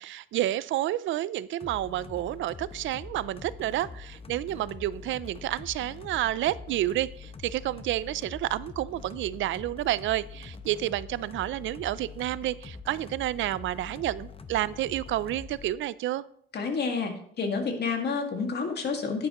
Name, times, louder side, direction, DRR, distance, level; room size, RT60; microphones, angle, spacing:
voice 1, 0.0-16.2, right 14 dB, 75° right, 18 dB, 0.4 m, -30 dB
sound 1, 1.6-15.7, left 5 dB, 30° left, 0.8 m, -44 dB
voice 2, 16.5-19.3, left 5 dB, 55° left, 4 dB, 2.0 m, -29 dB
11.0 x 9.5 x 3.0 m, 0.66 s
cardioid pair, 90°, 20 cm